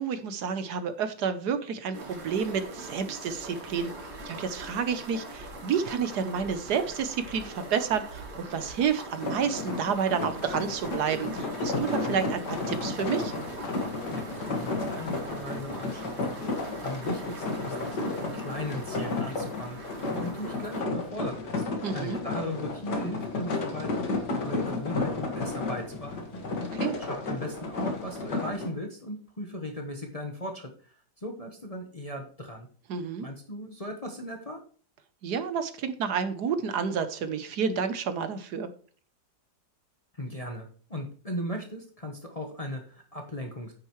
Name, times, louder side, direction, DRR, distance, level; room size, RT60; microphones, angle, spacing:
voice 1, 0.0-3.9 4.2-13.3 21.8-22.2 26.6-27.0 32.9-33.3 35.2-38.7, right 6 dB, 70° right, 10 dB, 1.3 m, -30 dB
sound 1, 1.9-20.8, right 2 dB, 90° right, 2.6 m, -43 dB
sound 2, 9.1-28.7, left 3 dB, 65° left, 2.3 m, -32 dB
voice 2, 14.1-16.5 16.8-21.6 21.9-24.2 24.4-26.4 27.0-32.7 33.2-34.6 40.1-43.7, left 1 dB, 25° left, 3 dB, 0.9 m, -38 dB
9.2 x 8.9 x 3.1 m, 0.42 s
omnidirectional pair, 1.9 m